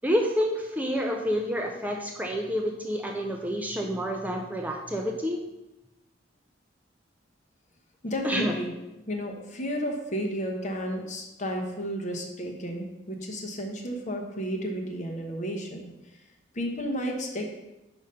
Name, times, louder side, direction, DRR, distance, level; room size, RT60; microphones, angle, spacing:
voice 1, 0.0-5.4 8.2-8.5, equal, 10° right, 2 dB, 0.5 m, -28 dB
voice 2, 8.0-8.7 9.1-15.9 16.5-17.6, equal, 40° left, 2 dB, 1.0 m, -32 dB
5.2 x 5.1 x 5.5 m, 0.96 s
head